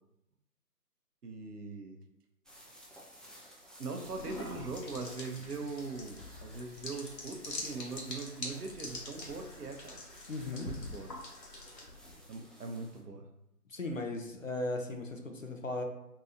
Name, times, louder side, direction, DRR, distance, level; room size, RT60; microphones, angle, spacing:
voice 1, 1.2-2.0 3.8-10.0 10.5-11.1 12.3-13.3, right 3 dB, 70° right, 4 dB, 0.7 m, -41 dB
sound 1, 2.4-13.0, equal, ahead, 0.4 m, -56 dB
sound 2, 4.1-12.1, left 2 dB, 85° left, 1.2 m, -45 dB
voice 2, 10.3-10.7 13.7-15.8, left 2 dB, 55° left, 3 dB, 0.5 m, -37 dB
3.9 x 2.7 x 2.4 m, 0.84 s
figure-of-eight pair, 175°, 49 cm